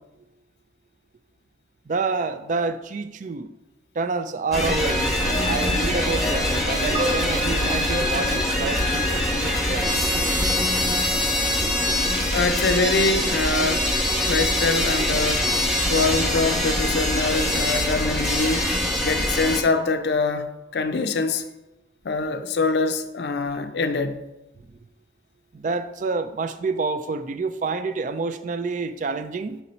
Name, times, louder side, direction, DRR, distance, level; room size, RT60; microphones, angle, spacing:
voice 1, 1.9-3.5 3.9-9.9 25.5-29.6, right 4 dB, 45° right, 0.4 m, -28 dB
sound 1, 4.5-19.6, left 1 dB, ahead, 1.0 m, -23 dB
sound 2, 4.7-9.8 10.7-10.9, right 1 dB, 25° right, 1.0 m, -33 dB
voice 2, 12.3-13.9 14.3-15.5 15.9-18.7 19.0-21.4 22.0-24.2, left 3 dB, 65° left, 0.5 m, -24 dB
5.7 x 4.1 x 4.2 m
head